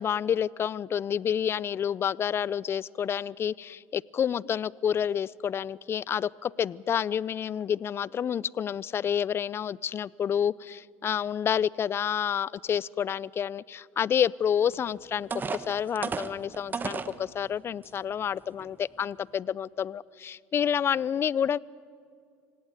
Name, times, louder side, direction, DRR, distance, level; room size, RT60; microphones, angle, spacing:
voice 1, 0.0-21.6, left 8 dB, 40° left, 24 dB, 0.5 m, -29 dB
sound 1, 14.7-14.8 15.3-17.2 17.8-17.9 18.4-18.6, right 5 dB, 30° right, 1.2 m, -33 dB
25.5 x 17.5 x 9.0 m, 2.4 s
hypercardioid pair, 80°, 7 cm